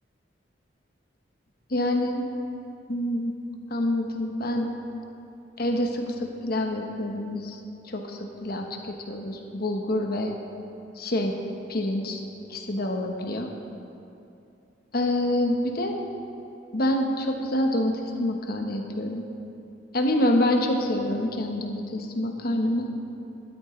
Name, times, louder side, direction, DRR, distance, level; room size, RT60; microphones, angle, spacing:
voice 1, 1.7-2.2 2.9-3.3 3.7-4.7 5.6-7.6 7.9-10.3 11.0-11.4 11.7-12.2 12.5-13.5 14.9-16.0 16.7-19.2 19.9-22.9, left 1 dB, 55° left, 3 dB, 1.1 m, -26 dB
13.0 x 12.5 x 3.2 m, 2.7 s
head